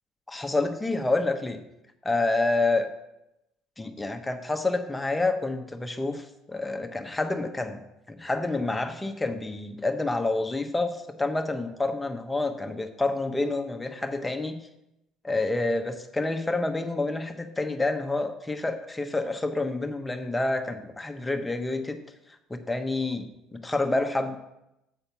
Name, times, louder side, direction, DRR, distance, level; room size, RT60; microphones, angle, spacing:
voice 1, 0.3-1.6 2.0-2.9 3.8-7.8 8.1-14.6 15.2-22.0 22.5-24.4, left 2 dB, 15° left, 5 dB, 1.0 m, -28 dB
8.2 x 4.3 x 6.8 m, 0.88 s
hypercardioid pair, 70°, 0 cm